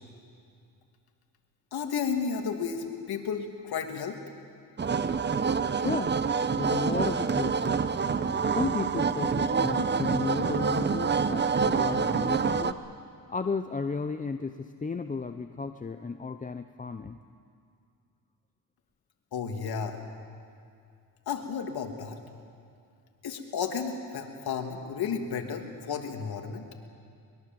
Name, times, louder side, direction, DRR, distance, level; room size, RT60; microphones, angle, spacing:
voice 1, 1.7-4.2 19.3-20.0 21.3-22.2 23.2-26.7, left 6 dB, 60° left, 3 dB, 2.8 m, -32 dB
sound 1, 4.8-12.7, right 5 dB, 25° right, 0.9 m, -27 dB
voice 2, 5.7-6.2 6.6-7.8 8.5-12.8 13.3-17.2, left 4 dB, 20° left, 8 dB, 0.7 m, -33 dB
23.5 x 21.5 x 7.8 m, 2.4 s
cardioid pair, 90°, 41 cm